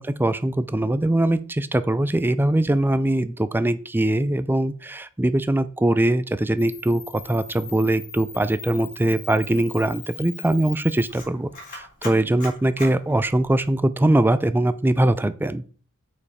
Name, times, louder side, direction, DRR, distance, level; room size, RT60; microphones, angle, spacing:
voice 1, 0.0-15.6, right 1 dB, 10° right, 14 dB, 0.4 m, -22 dB
Camera, 6.6-13.7, left 4 dB, 40° left, 3.6 m, -40 dB
6.9 x 5.2 x 4.9 m, 0.41 s
head